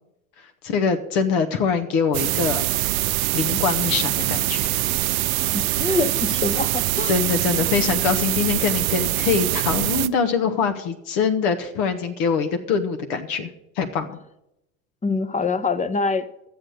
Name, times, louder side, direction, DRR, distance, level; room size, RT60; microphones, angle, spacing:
voice 1, 0.4-2.8 3.3-4.6 7.1-13.5 13.8-14.2, left 6 dB, 65° left, 6 dB, 1.3 m, -23 dB
sound 1, 2.1-10.1, right 16 dB, 75° right, 0.6 m, -23 dB
voice 2, 5.5-7.2 15.0-16.5, left 3 dB, 15° left, 13 dB, 0.9 m, -25 dB
12.5 x 7.7 x 6.4 m, 0.84 s
hypercardioid pair, 70°, 42 cm